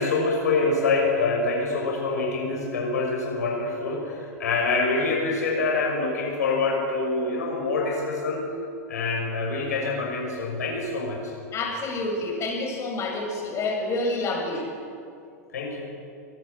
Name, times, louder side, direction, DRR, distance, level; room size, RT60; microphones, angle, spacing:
voice 1, 0.0-8.5 8.9-11.3 15.5-15.8, left 3 dB, 80° left, 0 dB, 6.2 m, -25 dB
voice 2, 11.5-14.7, left 2 dB, 35° left, 0 dB, 7.8 m, -28 dB
27.5 x 18.0 x 8.3 m, 2.4 s
hypercardioid pair, 100°, 9 cm